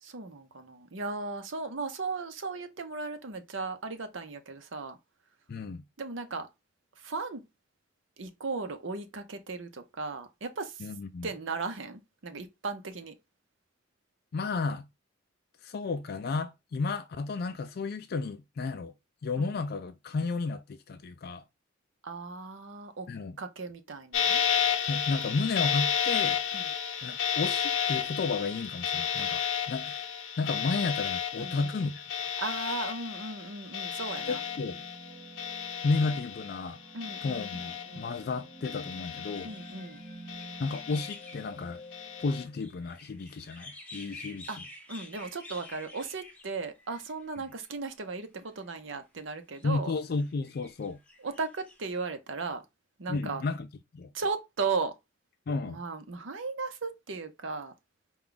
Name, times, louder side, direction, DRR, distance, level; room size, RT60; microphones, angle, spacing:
voice 1, 0.0-5.0 6.0-6.5 7.0-7.4 8.2-10.9 11.2-13.1 19.4-19.5 22.0-23.1 23.4-24.4 26.5-26.7 31.4-31.6 32.4-34.4 36.9-38.1 39.4-40.0 44.5-44.6 44.9-49.9 51.2-52.6 53.0-53.4 54.1-54.9 55.7-57.7, right 4 dB, 80° right, 0.8 m, -36 dB
voice 2, 5.5-5.8 10.8-11.3 14.3-14.9 15.6-18.9 19.2-21.4 23.1-23.4 24.9-26.4 27.0-32.3 34.3-34.8 35.8-36.8 37.2-39.5 40.6-41.8 42.2-44.5 49.6-51.0 53.1-53.7 53.9-54.1 55.5-55.8, left 4 dB, 55° left, 0.4 m, -32 dB
sound 1, 24.1-36.7 37.0-38.2 38.6-39.9 40.3-41.3 41.9-42.4, left 8 dB, 90° left, 0.8 m, -32 dB
sound 2, 33.9-42.6, right 1 dB, 60° right, 2.0 m, -50 dB
sound 3, 39.3-47.7 48.4-49.0 49.5-51.9, left 2 dB, 10° left, 0.8 m, -50 dB
4.5 x 2.3 x 3.8 m
head